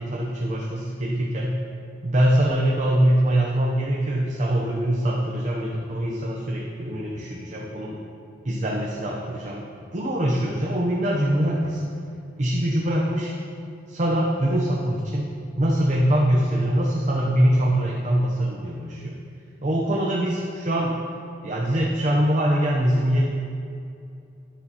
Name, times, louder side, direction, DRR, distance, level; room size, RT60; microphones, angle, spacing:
voice 1, 0.0-1.5 2.0-8.0 8.4-9.6 9.9-11.8 12.4-13.3 13.9-15.2 15.6-19.1 19.6-20.9 21.4-23.2, right 1 dB, 40° right, -3 dB, 0.8 m, -23 dB
10.5 x 9.5 x 3.0 m, 2.5 s
head